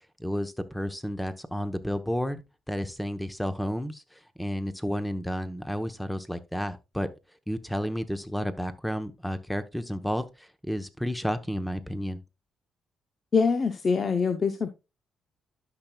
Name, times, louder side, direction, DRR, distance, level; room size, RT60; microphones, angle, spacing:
voice 1, 0.2-2.4 2.7-7.1 7.5-12.2, equal, ahead, 1.0 m, -31 dB
voice 2, 13.3-14.7, left 5 dB, 45° left, 0.8 m, -24 dB
12.5 x 5.9 x 2.3 m
cardioid pair, 90°, 0 cm